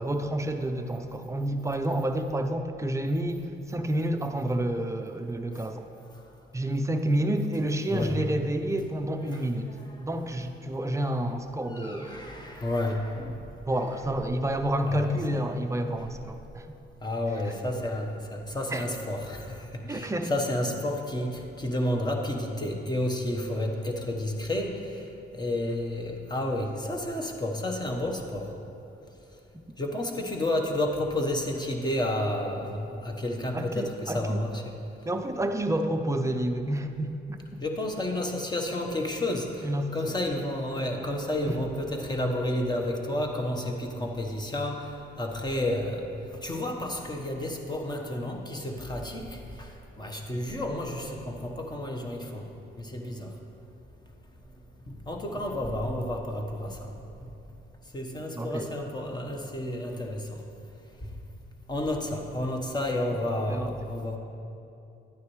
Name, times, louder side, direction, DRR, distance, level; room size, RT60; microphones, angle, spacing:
voice 1, 0.0-5.9 6.5-12.6 13.7-16.7 18.7-18.8 19.8-20.3 33.5-34.4 35.1-37.6 39.6-40.2 41.5-41.6 58.4-58.7 63.5-63.7, right 1 dB, 15° right, 6 dB, 0.6 m, -29 dB
voice 2, 7.9-8.2 9.2-10.0 11.7-13.4 14.9-15.4 16.0-16.1 17.0-25.0 25.3-28.5 29.8-34.7 37.6-46.0 46.3-49.7 50.0-52.4 52.8-53.3 54.9-56.9 57.9-60.4 61.7-64.2, left 1 dB, 20° left, 2 dB, 1.2 m, -31 dB
11.5 x 9.3 x 3.2 m, 2.8 s
cardioid pair, 90°, 20 cm